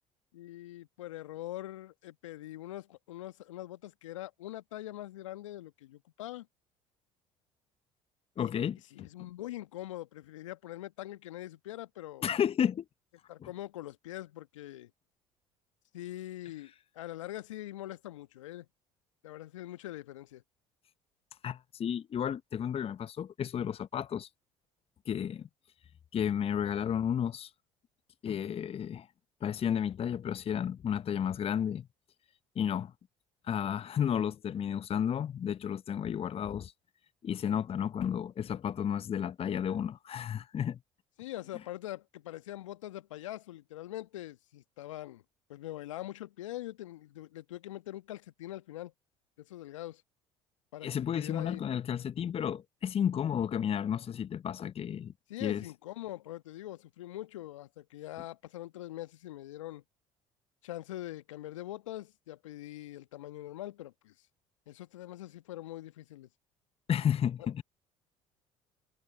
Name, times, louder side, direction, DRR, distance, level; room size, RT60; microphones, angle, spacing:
voice 1, 0.3-6.5 8.4-8.5 8.9-12.3 13.3-14.9 15.9-18.7 19.2-20.4 41.2-45.2 45.5-48.9 49.4-50.0 50.7-51.6 55.3-59.8 60.6-64.1 64.7-66.3 67.4-67.5, left 15 dB, 80° left, 1.2 m, -43 dB
voice 2, 8.4-9.1 12.2-12.8 13.4-13.5 21.4-24.3 25.1-25.5 26.1-27.5 28.2-29.1 29.4-31.9 32.6-32.9 33.5-36.7 37.2-40.8 50.8-55.1 55.4-55.6 66.9-67.6, left 8 dB, 40° left, 0.8 m, -32 dB
hypercardioid pair, 60°, 16 cm